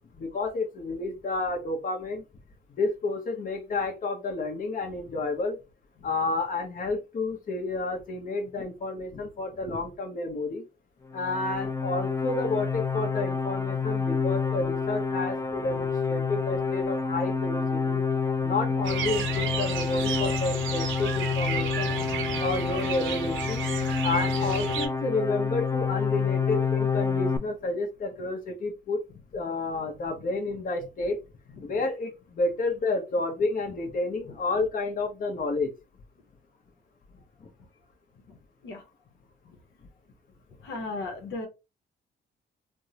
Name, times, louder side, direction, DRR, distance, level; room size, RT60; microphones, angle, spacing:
voice 1, 0.1-2.2 2.8-5.6 6.0-10.6 11.1-18.0 18.4-22.0 22.4-23.6 24.0-29.0 29.3-31.2 31.6-35.7 37.4-37.5, left 3 dB, 45° left, 3 dB, 0.8 m, -30 dB
sound 1, 11.1-27.4, left 5 dB, 15° left, 0.4 m, -28 dB
sound 2, 18.8-24.9, right 6 dB, 80° right, 0.7 m, -33 dB
voice 2, 40.6-41.5, left 3 dB, 75° left, 3 dB, 0.9 m, -36 dB
3.4 x 2.0 x 2.7 m, 0.26 s
cardioid pair, 90°, 20 cm